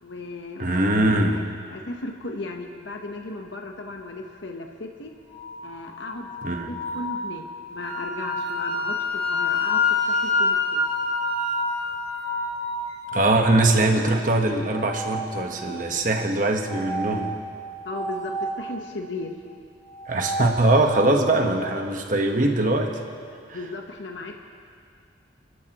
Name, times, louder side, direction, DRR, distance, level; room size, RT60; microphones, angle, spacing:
voice 1, 0.0-5.1 5.6-6.3 6.7-7.4 7.7-9.8 10.1-10.8 17.8-19.4 23.5-24.3, left 2 dB, 80° left, 2 dB, 1.1 m, -36 dB
voice 2, 0.6-1.5 6.4-6.7 13.1-17.3 20.1-23.0 23.5-23.6, right 2 dB, 45° right, 3 dB, 1.3 m, -22 dB
sound 1, 5.3-13.4 14.6-15.9 16.6-18.6 19.8-21.2, equal, 20° left, 3.8 m, -33 dB
Wind instrument woodwind instrument, 7.8-12.0, left 4 dB, 45° left, 3.5 m, -25 dB
29.5 x 13.0 x 3.0 m, 2.4 s
head